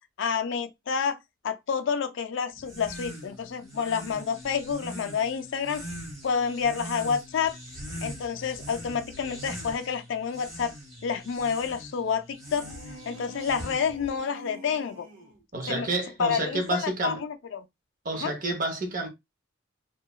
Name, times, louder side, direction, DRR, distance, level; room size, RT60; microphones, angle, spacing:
voice 1, 0.2-1.2 1.4-5.8 6.2-7.6 8.0-10.7 11.0-12.7 13.1-15.1 15.7-15.9 16.2-17.6 18.2-18.3, left 6 dB, 65° left, 0.4 m, -29 dB
sound 1, 2.6-14.1, equal, 15° right, 1.2 m, -42 dB
sound 2, 12.5-15.4, left 2 dB, 80° right, 1.0 m, -46 dB
voice 2, 15.5-17.2 18.0-19.1, right 2 dB, 45° right, 0.7 m, -29 dB
2.9 x 2.2 x 2.3 m
head